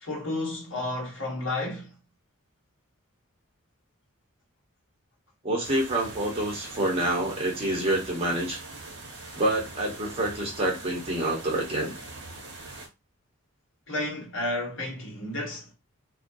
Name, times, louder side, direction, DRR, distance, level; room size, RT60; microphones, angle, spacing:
voice 1, 0.0-1.9 13.9-15.7, left 2 dB, 60° left, 1.1 m, -32 dB
voice 2, 5.4-8.6 9.4-11.9, right 1 dB, 25° right, 0.9 m, -27 dB
sound 1, 5.6-12.9, right 2 dB, 55° right, 0.8 m, -42 dB
2.2 x 2.2 x 2.5 m
head